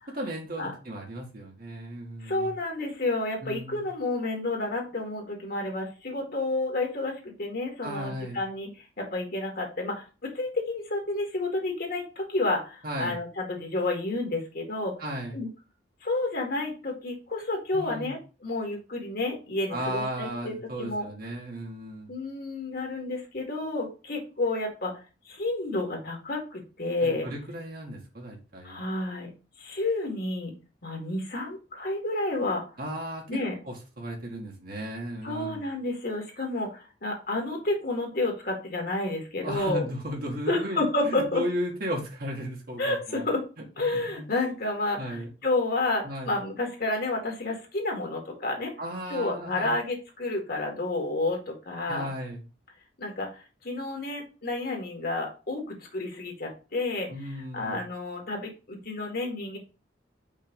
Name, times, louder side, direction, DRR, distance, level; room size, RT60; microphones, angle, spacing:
voice 1, 0.1-2.5 3.4-3.8 7.8-8.4 12.8-13.2 15.0-15.4 17.7-18.1 19.7-22.1 27.0-28.8 32.8-35.6 39.4-43.2 43.8-44.2 45.0-45.3 46.0-46.4 48.8-49.8 51.9-52.4 57.1-57.8, equal, 55° right, 0 dB, 1.5 m, -35 dB
voice 2, 2.2-14.9 15.3-15.5 16.0-21.1 22.1-24.9 25.3-27.3 28.6-29.3 29.6-30.5 30.8-32.6 33.3-33.5 35.2-39.9 40.5-41.4 42.8-43.4 43.8-48.7 49.1-52.1 53.0-53.3 53.6-59.6, left 2 dB, 55° left, 2 dB, 2.0 m, -30 dB
5.4 x 3.3 x 5.2 m, 0.32 s
head